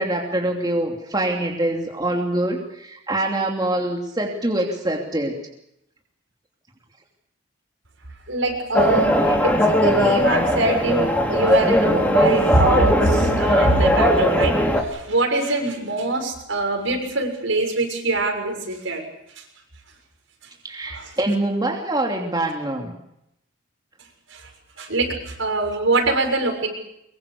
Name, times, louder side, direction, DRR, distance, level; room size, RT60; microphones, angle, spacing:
voice 1, 0.0-5.4 20.6-23.0, right 1 dB, 20° right, 1 dB, 2.9 m, -24 dB
voice 2, 8.3-19.0 20.8-21.1 24.3-24.5 24.8-26.7, right 2 dB, 70° right, 3 dB, 6.7 m, -23 dB
sound 1, 8.7-14.8, equal, 10° left, 3.0 m, -19 dB
24.5 x 23.0 x 6.9 m, 0.80 s
head